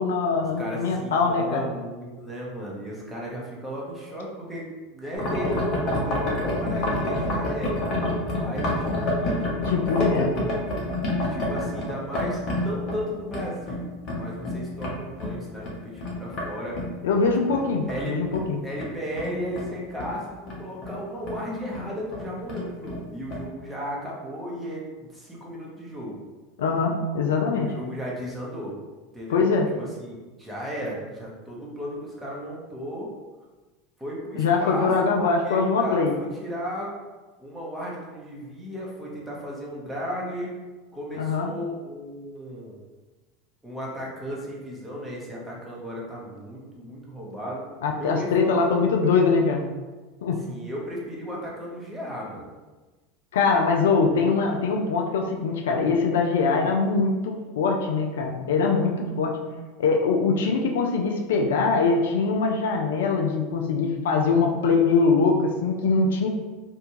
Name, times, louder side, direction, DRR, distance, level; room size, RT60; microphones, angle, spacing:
voice 1, 0.0-1.7 9.7-10.3 17.0-18.6 26.6-27.7 29.3-29.7 34.4-36.1 41.2-41.5 47.8-49.7 50.2-50.4 53.3-59.4 59.8-66.3, left 4 dB, 75° left, 1 dB, 0.3 m, -22 dB
voice 2, 0.6-4.7 4.9-10.5 11.2-13.9 14.1-16.8 17.5-18.1 18.6-26.2 27.5-28.8 29.1-29.5 29.8-33.1 34.0-34.9 35.2-36.9 37.4-40.5 40.9-42.8 43.6-47.6 48.0-49.1 50.4-52.5, equal, 5° right, -5 dB, 0.9 m, -35 dB
sound 1, 5.1-16.5 16.7-20.2 20.5-21.0 21.2-21.4 21.7-21.8 22.1-23.0 23.3-23.5, left 1 dB, 50° left, 0.7 m, -28 dB
2.5 x 2.2 x 2.9 m, 1.2 s
hypercardioid pair, 85°, 0 cm